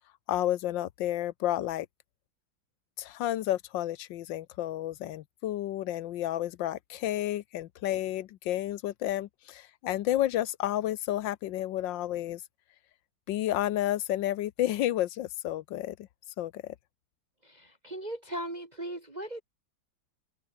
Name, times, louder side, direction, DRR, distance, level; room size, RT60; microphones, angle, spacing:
voice 1, 0.3-1.9 3.0-12.4 13.3-16.0 16.4-16.7, left 13 dB, 75° left, 1.4 m, -31 dB
voice 2, 17.4-19.4, right 1 dB, 20° right, 2.5 m, -38 dB
open air
omnidirectional pair, 2.2 m